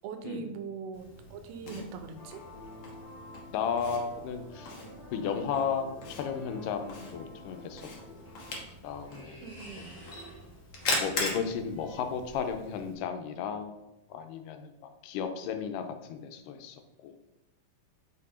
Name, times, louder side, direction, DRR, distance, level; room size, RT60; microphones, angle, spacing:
voice 1, 0.0-2.4 9.4-10.1, right 6 dB, 85° right, 8 dB, 2.3 m, -41 dB
Camera, 0.9-12.9, left 2 dB, 65° left, 1.2 m, -40 dB
sound 1, 2.1-8.6, left 1 dB, 40° left, 2.3 m, -49 dB
voice 2, 3.5-4.7 5.1-8.3 8.8-9.4 11.0-13.8 14.1-14.7 15.0-17.1, left 6 dB, 85° left, 6 dB, 2.2 m, -34 dB
sound 2, 8.2-12.8, equal, 15° left, 0.5 m, -52 dB
5.5 x 4.3 x 4.2 m, 0.92 s
omnidirectional pair, 3.8 m